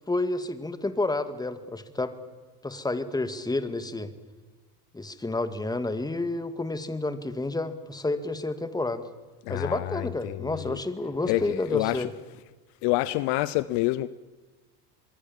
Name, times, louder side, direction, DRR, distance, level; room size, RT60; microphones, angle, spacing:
voice 1, 0.0-2.1 2.6-4.1 4.9-9.1 9.5-12.1, left 2 dB, 10° left, 2.0 m, -30 dB
voice 2, 9.4-10.8 11.3-12.1 12.8-14.1, left 18 dB, 55° left, 0.9 m, -28 dB
25.5 x 22.0 x 7.4 m
hypercardioid pair, 95°, 47 cm